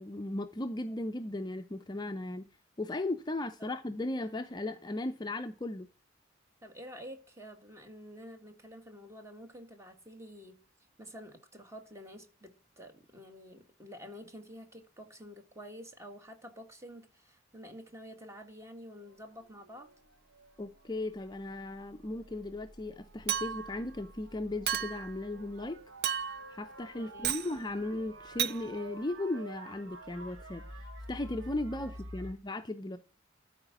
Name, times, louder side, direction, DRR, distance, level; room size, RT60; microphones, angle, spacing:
voice 1, 0.0-2.5 2.8-5.9 20.6-25.8 26.2-33.0, left 2 dB, 20° left, 0.5 m, -37 dB
voice 2, 6.6-10.6 11.0-19.9 27.0-27.4 31.7-31.9 32.2-32.4, equal, 15° right, 1.7 m, -49 dB
sound 1, 19.0-32.3, right 1 dB, 80° right, 1.5 m, -50 dB
Chink clink, 23.3-23.8 24.7-25.1 26.0-26.5 27.2-27.5 28.4-28.6, right 9 dB, 50° right, 0.6 m, -32 dB
13.0 x 4.9 x 5.8 m
head